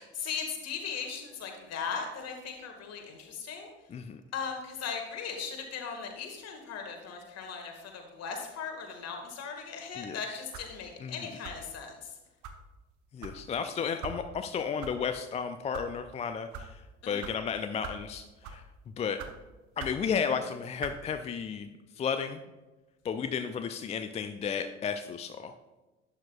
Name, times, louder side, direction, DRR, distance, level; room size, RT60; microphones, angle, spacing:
voice 1, 0.0-3.7 4.3-12.1 17.0-17.2, left 6 dB, 40° left, 3 dB, 1.9 m, -38 dB
voice 2, 3.9-4.2 10.0-10.4 11.0-11.3 13.1-18.6 19.0-19.2 19.8-21.7 21.9-22.4 23.0-25.5, left 6 dB, 20° left, 9 dB, 0.4 m, -33 dB
sound 1, 10.5-10.8 11.4-11.7 12.4-12.6 13.2-13.4 14.0-14.2 14.8-14.9 15.6-15.9 16.5-16.7 17.2-17.3 17.8-18.0 18.4-18.7 19.2-19.3 19.8-20.0 20.8-21.0, right 6 dB, 50° right, 1.1 m, -41 dB
11.5 x 8.4 x 2.3 m, 1.1 s
figure-of-eight pair, 60°, 38 cm